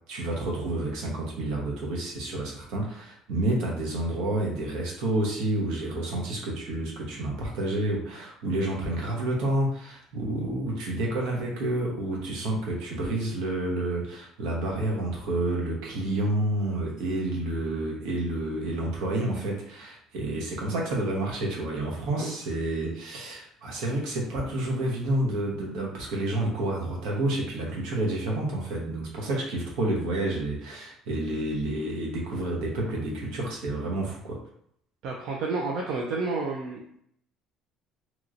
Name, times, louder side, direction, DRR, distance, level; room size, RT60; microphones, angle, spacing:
voice 1, 0.1-34.4, right 1 dB, 75° right, -2 dB, 0.9 m, -29 dB
voice 2, 35.0-36.8, right 3 dB, 60° right, -2 dB, 0.5 m, -30 dB
3.0 x 2.9 x 2.5 m, 0.70 s
cardioid pair, 170°, 0 cm